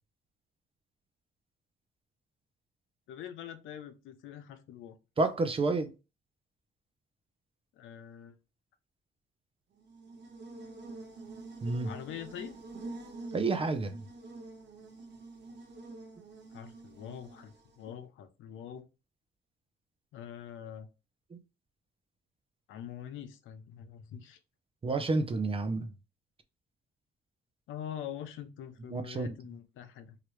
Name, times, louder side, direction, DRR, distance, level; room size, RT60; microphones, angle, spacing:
voice 1, 3.1-5.0 7.7-8.3 11.8-12.5 16.5-18.9 20.1-20.9 22.7-24.4 27.7-30.2, left 9 dB, 80° left, 0.5 m, -44 dB
voice 2, 5.2-5.9 11.6-11.9 13.3-13.9 21.3-21.4 24.8-25.9 28.9-29.4, right 3 dB, 30° right, 0.6 m, -29 dB
Buzz, 9.8-17.9, right 3 dB, 60° right, 0.8 m, -47 dB
3.1 x 2.4 x 3.0 m
cardioid pair, 90°, 20 cm